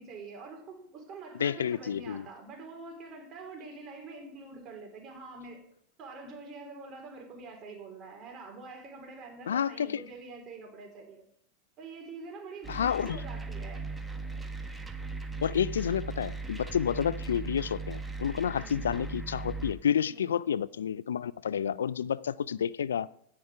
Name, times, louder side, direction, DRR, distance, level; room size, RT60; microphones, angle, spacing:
voice 1, 0.0-5.6 6.0-11.3 11.8-13.8 18.6-19.0 20.1-20.3, right 3 dB, 40° right, 3.7 m, -45 dB
voice 2, 1.4-2.3 9.5-10.0 12.7-13.2 15.4-23.1, left 8 dB, 90° left, 0.3 m, -30 dB
sound 1, 12.6-19.7, right 3 dB, 10° right, 1.3 m, -38 dB
16.5 x 5.7 x 4.9 m
hypercardioid pair, 105°, 0 cm